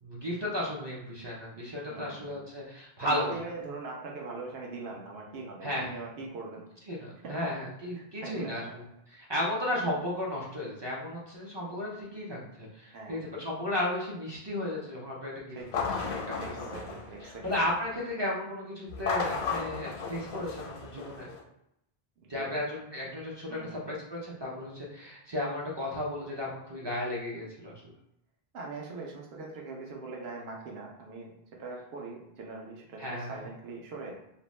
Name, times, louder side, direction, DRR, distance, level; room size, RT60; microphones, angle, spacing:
voice 1, 0.0-3.3 5.6-5.9 6.9-8.8 9.1-15.6 16.0-16.8 17.2-21.3 22.3-27.8 33.0-33.4, left 1 dB, 35° right, -5 dB, 0.4 m, -34 dB
voice 2, 1.9-2.4 3.0-6.6 7.2-7.4 8.0-8.6 12.9-13.2 15.5-15.8 16.4-17.5 22.2-22.5 23.5-23.9 28.5-34.1, right 3 dB, 80° right, -1 dB, 0.9 m, -41 dB
sound 1, 15.6-17.8 18.9-21.4, left 5 dB, 85° left, 0.9 m, -35 dB
2.6 x 2.1 x 3.0 m, 0.81 s
omnidirectional pair, 1.0 m